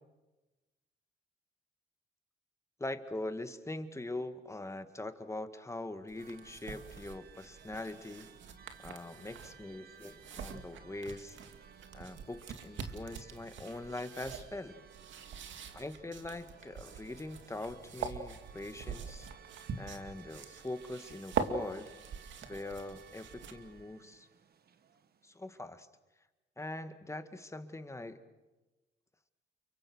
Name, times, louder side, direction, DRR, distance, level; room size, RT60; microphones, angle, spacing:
voice 1, 2.8-8.3 8.8-11.4 11.9-14.8 15.7-19.3 19.8-21.9 22.4-24.3 25.2-25.9 26.6-28.2, left 2 dB, 15° left, 9 dB, 2.0 m, -42 dB
sound 1, 6.1-23.8, right 6 dB, 70° right, 2.4 m, -44 dB
sound 2, 6.2-25.6, right 7 dB, 50° right, 1.5 m, -58 dB
29.5 x 24.0 x 6.4 m, 1.1 s
cardioid pair, 90°, 20 cm